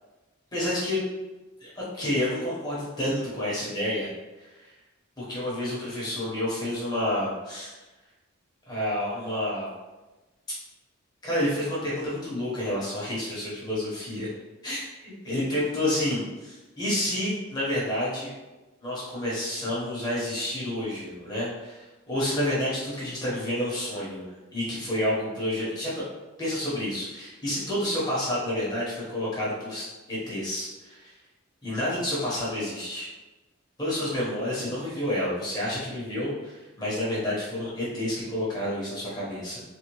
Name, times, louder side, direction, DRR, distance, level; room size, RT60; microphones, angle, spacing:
voice 1, 0.5-1.0 1.6-4.1 4.6-4.7 5.2-7.7 8.7-9.7 11.2-14.3 14.6-18.3 18.8-24.3 24.5-25.9 26.4-31.1 31.6-33.1 33.8-39.6, left 1 dB, 20° left, -8 dB, 0.9 m, -29 dB
3.4 x 2.3 x 3.0 m, 1.1 s
head